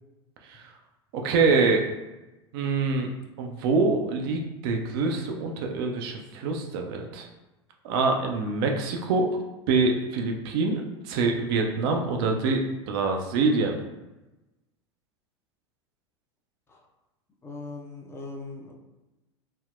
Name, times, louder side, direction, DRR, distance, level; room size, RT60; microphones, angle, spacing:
voice 1, 1.1-1.8 2.5-3.1 3.4-7.3 7.8-9.3 9.7-13.8, right 4 dB, 55° right, 3 dB, 0.5 m, -25 dB
voice 2, 17.4-18.7, left 3 dB, 15° left, -1 dB, 0.6 m, -39 dB
3.4 x 2.1 x 2.4 m, 1.0 s
hypercardioid pair, 85°, 15 cm